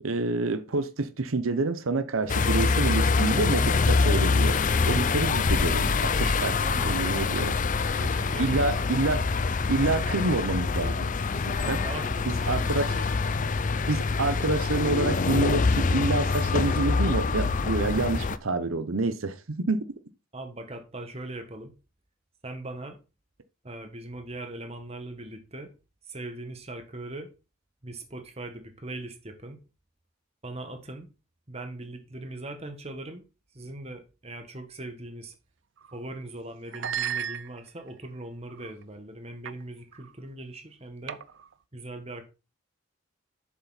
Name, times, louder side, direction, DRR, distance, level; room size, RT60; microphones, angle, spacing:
voice 1, 0.0-7.5 8.4-9.2 9.7-11.1 11.4-11.8 12.3-12.8 13.9-19.8, right 3 dB, 90° right, 0.8 m, -28 dB
sound 1, 2.2-13.9, equal, 10° right, 2.0 m, -50 dB
sound 2, 2.3-18.4, left 4 dB, 40° left, 0.5 m, -25 dB
voice 2, 6.5-7.4 7.9-8.6 11.5-13.1 20.3-21.7 22.4-23.0 23.6-25.7 26.1-27.3 27.8-29.6 30.4-31.1 31.5-33.2 33.5-35.3 35.9-41.2 41.7-42.2, right 2 dB, 30° right, 1.4 m, -40 dB
sound 3, 35.8-36.0 36.7-37.9 38.5-38.8 39.5-39.6 39.9-40.1 41.1-41.5, right 9 dB, 60° right, 0.5 m, -35 dB
7.4 x 7.1 x 4.1 m
head